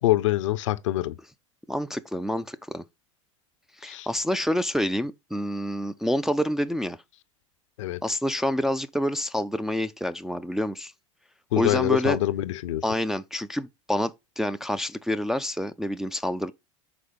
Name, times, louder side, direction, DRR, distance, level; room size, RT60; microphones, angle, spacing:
voice 1, 0.0-1.1 3.9-4.1 7.8-8.0 11.5-12.8, left 15 dB, 70° left, 0.5 m, -25 dB
voice 2, 1.7-2.8 3.8-7.0 8.0-10.9 11.6-12.2 12.8-16.5, equal, ahead, 0.3 m, -27 dB
5.1 x 3.8 x 5.1 m
hypercardioid pair, 85°, 17 cm